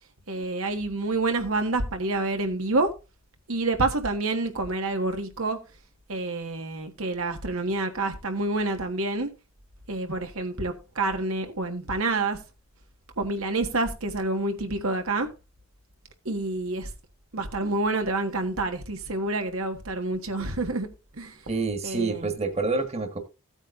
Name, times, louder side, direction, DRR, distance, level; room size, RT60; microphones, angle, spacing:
voice 1, 0.3-2.9 3.5-5.6 6.1-9.3 9.9-12.4 13.2-15.3 16.2-16.9 17.3-20.9 21.1-21.4 21.8-22.3, right 2 dB, 85° right, 1.6 m, -28 dB
voice 2, 21.5-23.2, right 3 dB, 30° right, 1.5 m, -27 dB
15.5 x 8.9 x 2.5 m
head